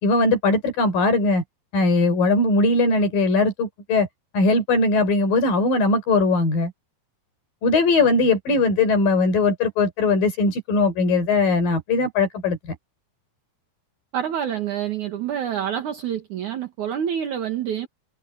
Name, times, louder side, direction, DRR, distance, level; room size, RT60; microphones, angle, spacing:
voice 1, 0.0-1.4 1.7-4.1 4.3-6.7 7.6-12.8, left 3 dB, 70° left, 6.0 m, -20 dB
voice 2, 14.1-17.9, right 9 dB, 60° right, 3.0 m, -27 dB
omnidirectional pair, 4.1 m